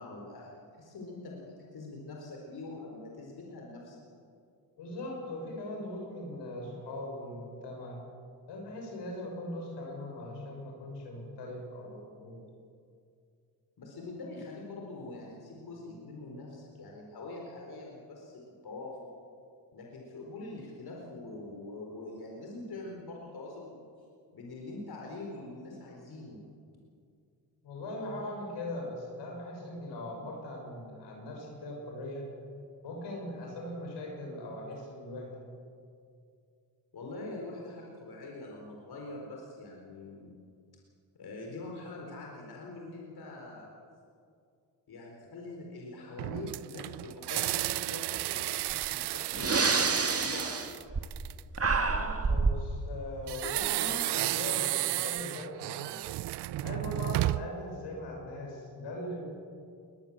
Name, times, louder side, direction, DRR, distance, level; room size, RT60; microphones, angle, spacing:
voice 1, 0.0-4.0 13.8-19.1 19.7-23.8 24.3-26.4 36.9-40.3 41.1-43.7 44.9-50.7, left 2 dB, 65° left, -1 dB, 4.5 m, -44 dB
voice 2, 4.8-8.0 8.5-12.4 27.6-32.3 32.8-35.5 51.9-56.0 56.6-59.2, left 1 dB, 85° left, 0 dB, 6.5 m, -40 dB
sound 1, 46.2-51.6 53.3-57.6, right 16 dB, 75° right, 0.5 m, -33 dB
Breathing, 48.7-48.8 49.3-51.3 51.6-52.7, right 4 dB, 35° right, 1.9 m, -28 dB
21.0 x 20.5 x 7.4 m, 2.3 s
cardioid pair, 60°, 41 cm